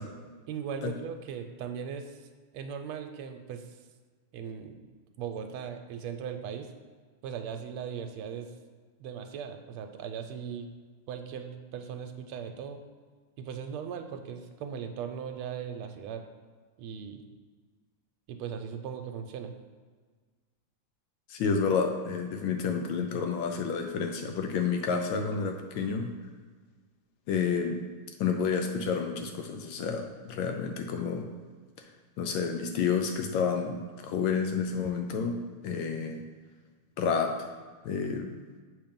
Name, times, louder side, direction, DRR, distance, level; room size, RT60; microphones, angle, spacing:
voice 1, 0.5-2.2 2.5-3.8 4.3-4.9 5.2-6.7 7.2-8.5 9.0-10.7 11.1-12.8 13.4-16.2 16.8-17.2 18.3-19.5, right 7 dB, 90° right, 6 dB, 1.5 m, -38 dB
voice 2, 21.3-26.1 27.3-27.8 28.2-31.4 32.2-35.4 35.6-36.2 37.0-37.4 37.8-38.3, left 6 dB, 75° left, 4 dB, 1.3 m, -30 dB
7.0 x 3.2 x 5.1 m, 1.5 s
omnidirectional pair, 2.3 m